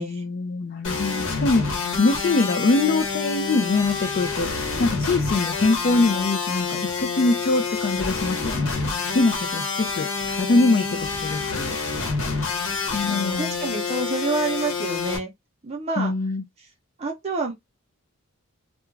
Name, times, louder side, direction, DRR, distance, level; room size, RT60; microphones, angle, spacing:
voice 1, 0.0-4.5 4.8-11.8 12.9-13.5 16.0-16.4, left 3 dB, 45° left, 0.4 m, -23 dB
sound 1, 0.8-15.2, left 4 dB, 65° left, 1.0 m, -27 dB
voice 2, 13.0-15.3 15.6-16.1 17.0-17.5, right 3 dB, 30° right, 0.6 m, -28 dB
2.3 x 2.2 x 3.1 m
head